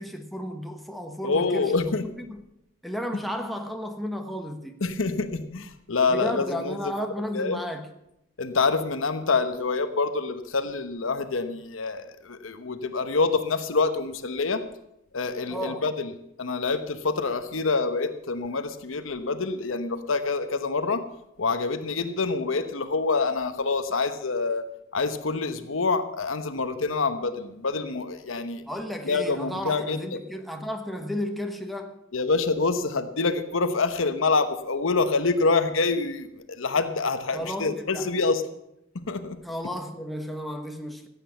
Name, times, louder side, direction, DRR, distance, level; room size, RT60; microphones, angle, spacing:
voice 1, 0.0-2.4 2.8-4.8 6.1-7.9 15.5-15.9 28.6-32.0 37.3-38.1 39.4-41.1, equal, ahead, 1.2 m, -33 dB
voice 2, 1.2-2.1 4.8-6.9 7.3-7.6 8.4-14.7 15.1-16.1 16.4-21.1 21.4-28.6 29.0-30.0 32.1-38.4 38.9-39.4, left 4 dB, 75° left, 1.0 m, -26 dB
14.5 x 8.5 x 7.0 m
head